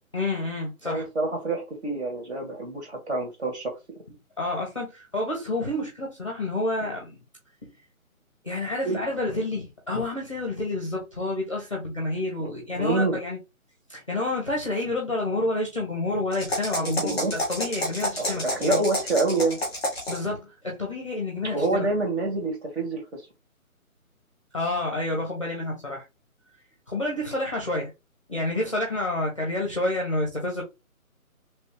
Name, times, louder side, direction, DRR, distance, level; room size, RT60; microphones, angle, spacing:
voice 1, 0.1-1.1 4.4-7.2 8.4-13.4 13.9-18.8 20.1-21.9 24.5-26.0 26.9-27.9 28.3-30.6, left 2 dB, 20° left, 0.7 m, -29 dB
voice 2, 0.8-3.7 6.8-6.9 8.8-9.0 12.4-13.2 16.8-17.3 18.2-19.6 21.5-23.3, right 2 dB, 50° right, 2.0 m, -27 dB
sound 1, 16.3-20.3, left 1 dB, 5° right, 0.9 m, -30 dB
3.1 x 3.1 x 2.9 m
hypercardioid pair, 170°, 43 cm